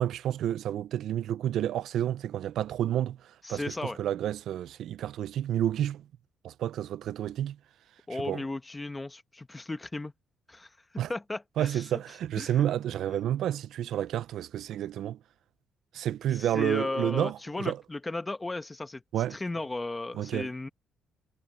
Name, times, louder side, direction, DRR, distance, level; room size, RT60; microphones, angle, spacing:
voice 1, 0.0-6.0 6.4-7.6 8.1-8.4 11.0-11.1 11.6-15.2 15.9-17.8 19.1-19.4 20.1-20.5, right 11 dB, 75° right, 0.4 m, -30 dB
voice 2, 3.4-4.0 8.1-10.1 10.5-10.7 11.1-11.9 12.4-12.6 16.3-19.0 19.3-20.7, left 2 dB, 15° left, 1.2 m, -35 dB
cardioid pair, 130°, 0 cm